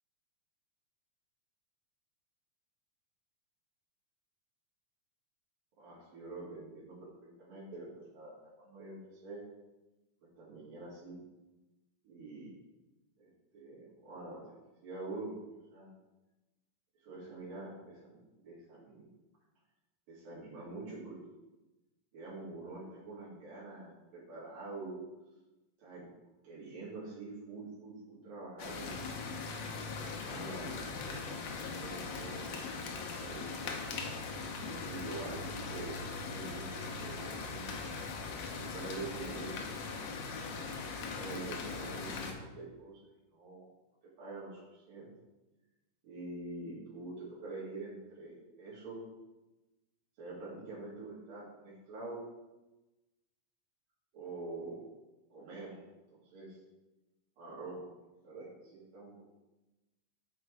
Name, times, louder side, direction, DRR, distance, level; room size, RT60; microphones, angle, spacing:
voice 1, 5.8-7.9 8.1-9.4 10.4-11.2 12.0-12.5 13.2-14.5 14.8-15.3 15.7-15.9 17.0-19.0 20.1-21.2 22.1-25.0 25.8-26.1 26.4-28.9 30.1-33.6 34.5-35.9 36.2-37.7 38.5-40.0 41.1-43.0 43.3-43.7 44.2-44.6 44.9-45.1 46.0-49.0 50.2-52.2 54.1-54.8 55.3-55.8 56.1-56.6 57.4-57.8 58.2-59.2, right 2 dB, 80° right, -7 dB, 3.9 m, -46 dB
sound 1, 28.6-42.3, left 4 dB, 75° left, 1.5 m, -40 dB
8.2 x 4.5 x 4.7 m, 1.1 s
omnidirectional pair, 4.0 m